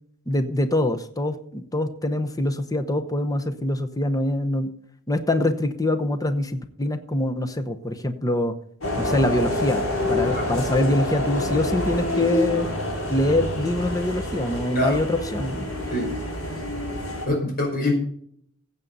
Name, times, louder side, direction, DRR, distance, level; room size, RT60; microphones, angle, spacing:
voice 1, 0.3-4.7 5.1-8.5 9.0-12.7 13.1-15.7, left 1 dB, 15° left, 8 dB, 0.9 m, -24 dB
sound 1, 8.8-17.3, left 1 dB, 75° left, 4.9 m, -27 dB
voice 2, 17.3-17.9, left 1 dB, 45° left, 1 dB, 5.2 m, -24 dB
15.5 x 8.3 x 4.1 m, 0.64 s
head